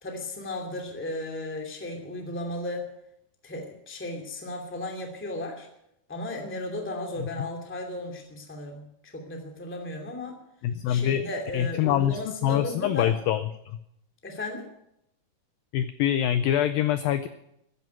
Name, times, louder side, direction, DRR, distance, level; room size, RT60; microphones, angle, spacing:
voice 1, 0.0-2.9 3.4-5.7 6.1-10.3 10.9-13.1 14.2-14.7, left 1 dB, 5° left, 2 dB, 1.3 m, -35 dB
voice 2, 10.6-11.2 11.5-13.5 15.7-17.3, left 11 dB, 85° left, 11 dB, 2.1 m, -24 dB
14.0 x 9.3 x 9.5 m, 0.80 s
omnidirectional pair, 4.8 m